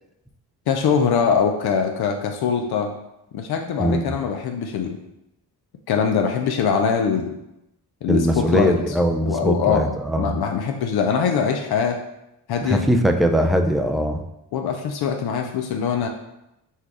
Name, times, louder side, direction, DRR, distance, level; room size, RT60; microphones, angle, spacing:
voice 1, 0.7-2.9 3.3-5.0 5.9-7.4 8.0-8.7 9.2-12.0 12.5-12.9 14.5-16.1, left 6 dB, 70° left, 3 dB, 0.6 m, -22 dB
voice 2, 3.8-4.1 8.1-10.4 12.6-14.2, right 1 dB, ahead, 4 dB, 0.3 m, -21 dB
4.2 x 2.3 x 4.7 m, 0.87 s
cardioid pair, 80°, 40 cm